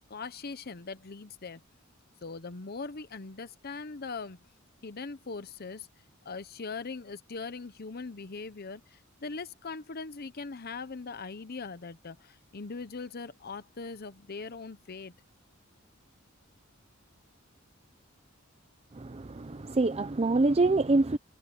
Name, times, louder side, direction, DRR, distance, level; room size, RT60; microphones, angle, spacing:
voice 1, 0.1-1.6 2.2-4.4 4.8-5.9 6.2-15.1, left 4 dB, 50° left, 0.8 m, -40 dB
voice 2, 18.9-21.2, right 2 dB, 30° right, 0.6 m, -25 dB
head